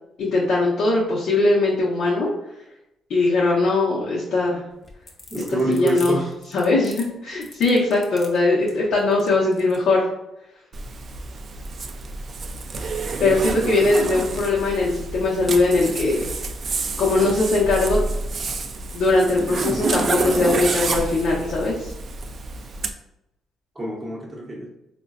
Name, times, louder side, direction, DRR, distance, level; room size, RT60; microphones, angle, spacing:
voice 1, 0.2-2.3 3.1-4.6 5.7-6.2 6.5-10.1 13.2-16.2 17.0-18.0 18.9-21.9, left 3 dB, 70° left, -6 dB, 0.6 m, -20 dB
sound 1, 4.7-9.8, left 2 dB, 35° left, 0.7 m, -42 dB
voice 2, 5.3-6.3 13.1-13.9 23.7-24.7, right 2 dB, 20° right, -4 dB, 0.7 m, -27 dB
Zipper (clothing), 10.7-22.9, right 3 dB, 50° right, 0.3 m, -28 dB
3.7 x 2.1 x 2.4 m, 0.88 s
cardioid pair, 90°, 0 cm